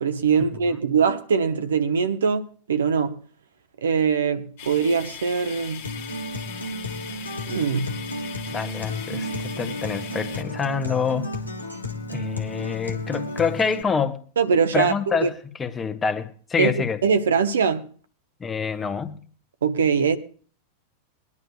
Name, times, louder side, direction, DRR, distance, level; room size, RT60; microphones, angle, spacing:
voice 1, 0.0-3.2 3.8-5.8 7.5-7.9 14.4-15.3 16.6-17.8 19.6-20.2, right 6 dB, 65° right, 0.8 m, -22 dB
sound 1, 4.6-10.4, left 8 dB, 50° left, 1.6 m, -40 dB
Acoustic guitar, 5.8-13.8, left 1 dB, 85° left, 1.4 m, -33 dB
voice 2, 8.5-11.3 12.1-14.2 14.7-17.0 18.4-19.2, left 6 dB, 20° left, 1.1 m, -26 dB
22.5 x 11.0 x 2.2 m
figure-of-eight pair, 90°, 0 cm